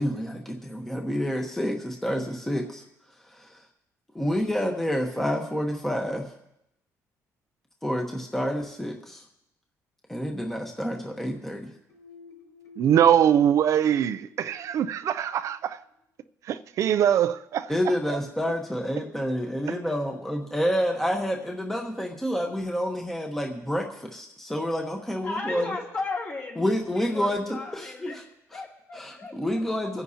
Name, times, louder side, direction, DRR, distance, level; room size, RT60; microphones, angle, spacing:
voice 1, 0.0-2.8 3.2-3.6 4.1-6.3 7.8-9.2 10.1-11.7 17.7-25.7 26.6-28.2 28.5-28.6 28.9-30.0, equal, 5° left, 1.1 m, -29 dB
sound 1, 11.9-15.6, left 5 dB, 60° left, 4.9 m, -50 dB
voice 2, 12.8-15.8 16.4-17.7 18.1-18.2, right 9 dB, 60° right, 0.4 m, -22 dB
voice 3, 25.2-26.6 26.9-28.2 28.5-29.6, left 3 dB, 40° left, 3.0 m, -35 dB
25.5 x 10.0 x 2.8 m
cardioid pair, 135°, 6 cm